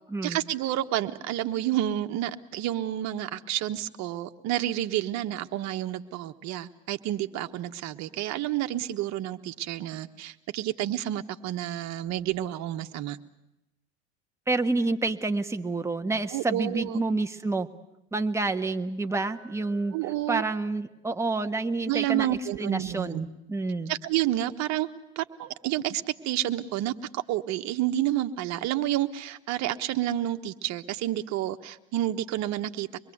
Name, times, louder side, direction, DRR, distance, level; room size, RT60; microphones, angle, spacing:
voice 1, 0.2-13.2 16.3-17.0 19.9-20.4 21.9-23.3 23.9-24.9 25.1-32.9, right 13 dB, 55° right, 8 dB, 1.4 m, -30 dB
voice 2, 14.5-17.7 18.1-20.0 20.3-22.3 22.6-23.9, right 3 dB, 10° right, 5 dB, 1.5 m, -28 dB
Glass, 19.1-23.2, right 5 dB, 30° left, 7.9 m, -60 dB
25.0 x 22.0 x 8.1 m, 0.91 s
hypercardioid pair, 80°, 33 cm